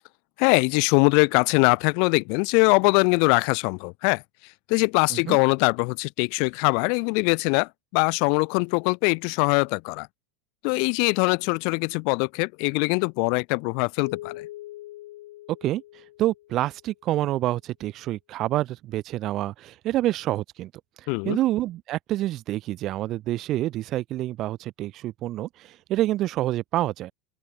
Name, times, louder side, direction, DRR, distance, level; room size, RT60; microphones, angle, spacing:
voice 1, 0.4-4.2 4.7-10.1 10.6-14.4 21.1-21.4, left 40 dB or more, 45° left, 0.8 m, -22 dB
Keyboard (musical), 14.0-16.9, left 16 dB, 75° left, 2.4 m, -42 dB
voice 2, 16.2-20.7 21.2-27.1, right 15 dB, 30° right, 0.7 m, -27 dB
open air
supercardioid pair, 175°, 0 cm